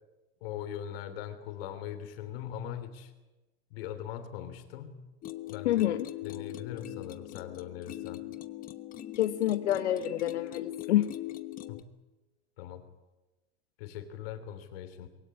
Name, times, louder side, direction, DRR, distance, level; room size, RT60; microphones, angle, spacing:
voice 1, 0.4-3.1 3.7-5.0 5.5-5.8 6.2-8.2 11.7-11.9 12.6-12.9 13.8-15.1, left 10 dB, 60° left, 11 dB, 3.3 m, -40 dB
sound 1, 5.2-11.8, left 14 dB, 25° left, 1.2 m, -41 dB
voice 2, 5.6-6.1 9.1-11.1, left 13 dB, 85° left, 10 dB, 1.2 m, -27 dB
22.0 x 17.0 x 9.7 m, 1.1 s
supercardioid pair, 140°, 34 cm